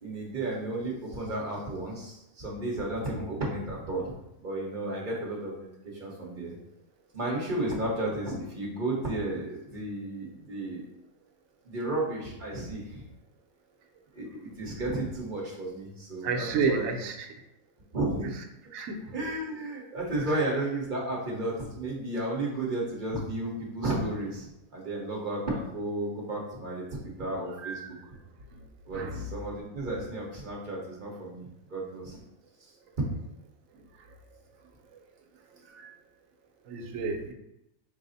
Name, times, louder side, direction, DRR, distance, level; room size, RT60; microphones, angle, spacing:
voice 1, 0.0-4.1 4.4-6.5 7.1-10.8 11.6-13.0 14.1-16.9 17.9-18.3 19.1-28.0 28.9-32.2, right 2 dB, 40° right, -2 dB, 1.0 m, -33 dB
voice 2, 16.2-17.3 18.7-19.1 27.6-27.9 28.9-29.2 35.7-35.9 36.7-37.3, right 4 dB, 80° right, 3 dB, 1.0 m, -31 dB
4.9 x 2.0 x 3.9 m, 0.86 s
omnidirectional pair, 1.4 m